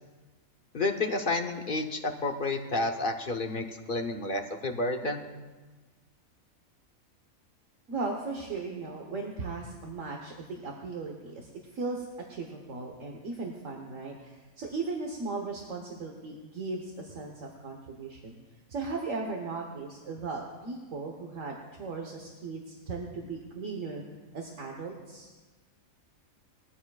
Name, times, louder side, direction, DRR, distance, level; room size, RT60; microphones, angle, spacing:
voice 1, 0.7-5.2, left 2 dB, 45° left, 5 dB, 0.9 m, -30 dB
voice 2, 7.9-18.3 18.7-24.0 24.3-25.3, right 3 dB, 65° right, 1 dB, 1.5 m, -37 dB
20.5 x 14.0 x 2.4 m, 1.3 s
omnidirectional pair, 1.5 m